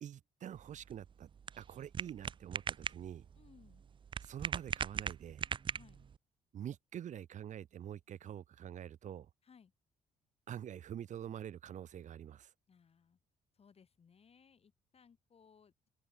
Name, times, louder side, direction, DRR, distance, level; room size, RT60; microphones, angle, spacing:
voice 1, 0.0-1.3 1.6-3.3 4.2-5.4 6.5-9.3 10.5-12.5, right 10 dB, 55° right, 1.2 m, -46 dB
sound 1, 0.5-6.2, right 7 dB, 35° right, 0.5 m, -41 dB
voice 2, 3.3-3.8 5.7-6.1 9.4-9.7 12.7-13.2 13.5-15.9, left 6 dB, 40° left, 6.6 m, -64 dB
cardioid pair, 85°, 15 cm